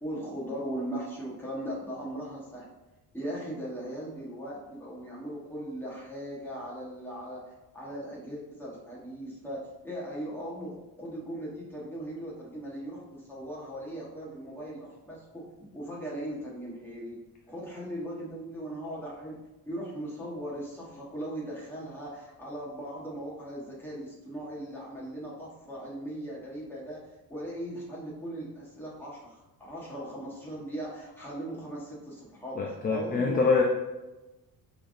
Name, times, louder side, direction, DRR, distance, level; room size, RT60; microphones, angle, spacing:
voice 1, 0.0-2.6 3.1-15.4 15.7-17.2 17.5-19.4 19.6-27.0 27.3-33.4, right 1 dB, 5° left, -6 dB, 1.3 m, -38 dB
voice 2, 32.6-33.6, left 4 dB, 25° left, 0 dB, 0.4 m, -25 dB
5.7 x 3.4 x 2.6 m, 1.1 s
cardioid pair, 145°, 37 cm